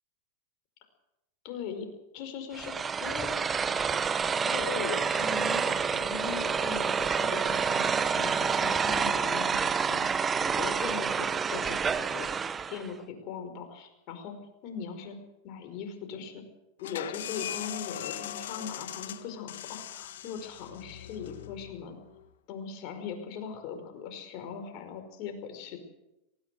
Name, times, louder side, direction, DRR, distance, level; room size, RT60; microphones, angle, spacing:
voice 1, 1.4-1.9 2.1-2.7 3.0-3.3 4.4-10.1 10.4-12.3 12.7-14.4 14.6-15.2 15.4-16.4 16.8-22.0 22.5-25.8, left 6 dB, 50° left, 6 dB, 5.2 m, -40 dB
sound 1, 2.5-12.9, right 6 dB, 20° right, 1.0 m, -28 dB
sound 2, 16.8-22.3, left 11 dB, 75° left, 1.4 m, -40 dB
19.0 x 18.0 x 7.9 m, 0.92 s
hypercardioid pair, 100°, 0 cm